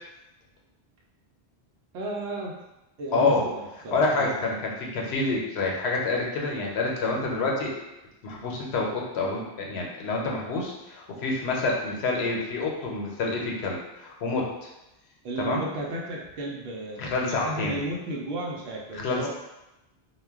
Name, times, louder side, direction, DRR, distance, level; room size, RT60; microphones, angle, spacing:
voice 1, 1.9-2.5 3.0-4.3 15.2-19.3, right 2 dB, 75° right, -2 dB, 0.8 m, -34 dB
voice 2, 3.1-3.5 3.9-7.7 8.2-14.7 15.4-15.6 17.0-17.8 18.9-19.3, left 3 dB, 80° left, -1 dB, 0.9 m, -27 dB
2.2 x 2.1 x 3.4 m, 0.96 s
omnidirectional pair, 1.1 m